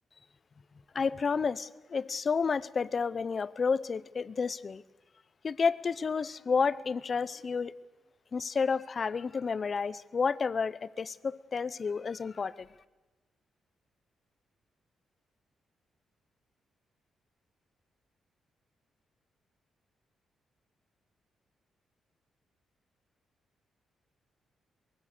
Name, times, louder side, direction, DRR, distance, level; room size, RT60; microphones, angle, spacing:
voice 1, 0.9-4.8 5.4-7.7 8.3-12.7, left 5 dB, 30° left, 17 dB, 0.7 m, -30 dB
24.0 x 22.0 x 6.7 m, 1.2 s
wide cardioid pair, 180°, 0 cm